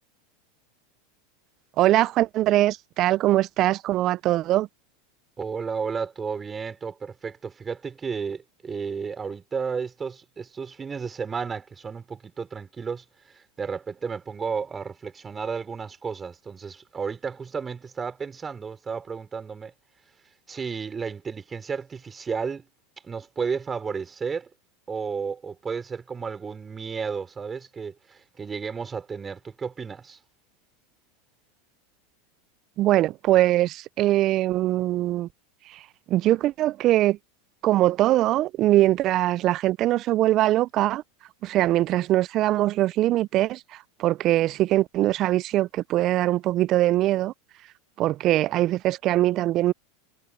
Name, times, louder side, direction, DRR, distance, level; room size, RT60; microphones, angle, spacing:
voice 1, 1.8-4.7 32.8-35.3 36.1-37.2 37.6-41.0 41.4-43.6 44.0-47.3 48.0-49.7, right 15 dB, 45° right, 0.4 m, -22 dB
voice 2, 5.4-19.7 20.5-22.7 23.0-24.5 24.9-30.2, right 5 dB, 20° right, 5.3 m, -33 dB
hypercardioid pair, 95°, 0 cm